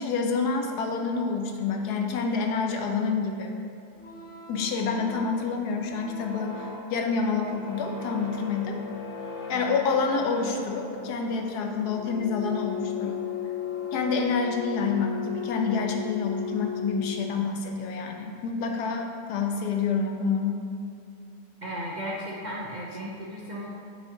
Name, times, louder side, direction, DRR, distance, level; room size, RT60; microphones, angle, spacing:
voice 1, 0.0-3.6 4.5-8.8 9.5-13.2 13.9-20.6, left 5 dB, 90° left, 3 dB, 1.3 m, -28 dB
sound 1, 3.9-17.7, left 7 dB, 50° left, 1.3 m, -37 dB
voice 2, 9.5-10.0 21.6-23.7, equal, 45° right, -5 dB, 0.6 m, -35 dB
9.9 x 5.4 x 2.8 m, 2.5 s
omnidirectional pair, 1.7 m